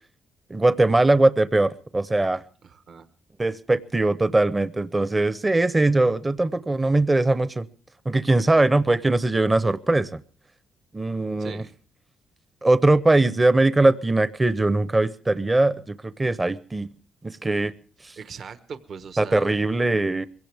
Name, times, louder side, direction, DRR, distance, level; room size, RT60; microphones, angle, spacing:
voice 1, 0.5-2.4 3.4-7.7 8.1-10.2 10.9-11.6 12.6-16.9 17.2-17.7 19.2-20.3, right 2 dB, 20° right, 14 dB, 0.7 m, -21 dB
voice 2, 2.6-3.1 11.4-11.7 18.2-19.6, right 6 dB, 55° right, 10 dB, 1.1 m, -40 dB
22.5 x 17.0 x 3.4 m, 0.42 s
cardioid pair, 90°, 0 cm